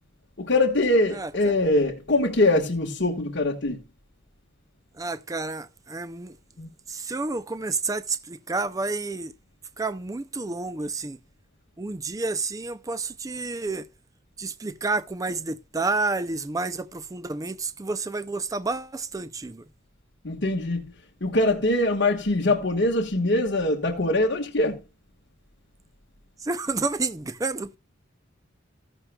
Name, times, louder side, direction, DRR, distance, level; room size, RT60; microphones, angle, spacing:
voice 1, 0.4-3.8 6.6-6.7 20.2-20.9 21.2-24.8, left 2 dB, 60° left, 1.5 m, -23 dB
voice 2, 1.1-1.6 4.9-6.4 6.9-9.3 9.8-11.2 11.8-13.9 14.4-19.7 26.4-27.8, right 3 dB, 20° right, 0.4 m, -30 dB
14.5 x 11.5 x 2.3 m
head